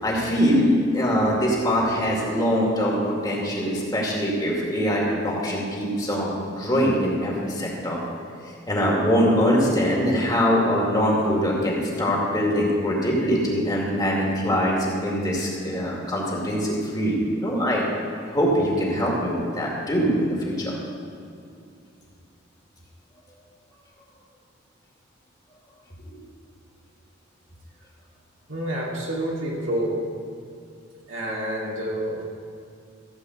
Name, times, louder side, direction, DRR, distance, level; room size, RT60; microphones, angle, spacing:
voice 1, 0.0-8.0 8.5-17.8 18.3-20.8 26.1-26.2, equal, 20° left, -3 dB, 2.4 m, -23 dB
voice 2, 28.5-30.1 31.1-32.2, right 1 dB, 70° right, -4 dB, 2.7 m, -28 dB
15.0 x 5.4 x 8.0 m, 2.4 s
head